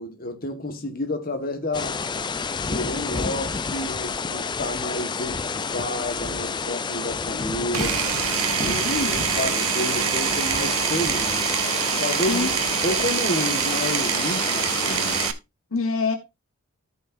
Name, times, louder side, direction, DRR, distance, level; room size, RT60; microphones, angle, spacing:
voice 1, 0.0-2.0 2.6-8.0 8.6-11.5 12.0-15.3, left 1 dB, 40° left, 1.5 m, -30 dB
sound 1, 1.7-15.3, left 5 dB, 20° left, 0.4 m, -29 dB
Power tool, 7.7-15.3, right 9 dB, 85° right, 0.8 m, -25 dB
voice 2, 8.6-9.3 12.3-12.5 15.7-16.2, left 4 dB, 70° left, 1.2 m, -26 dB
14.0 x 5.5 x 2.6 m
head